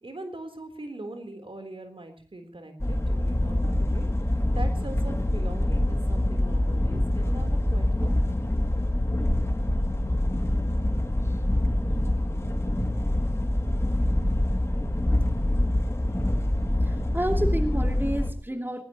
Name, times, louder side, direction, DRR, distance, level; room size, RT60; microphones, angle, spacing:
voice 1, 0.0-4.1 4.5-8.4, right 2 dB, 70° right, 6 dB, 3.7 m, -41 dB
sound 1, 2.8-18.3, left 1 dB, 30° left, 2.6 m, -25 dB
voice 2, 16.8-18.8, right 1 dB, 20° right, 4 dB, 2.9 m, -30 dB
21.0 x 20.0 x 3.0 m, 0.37 s
wide cardioid pair, 45°, 9 cm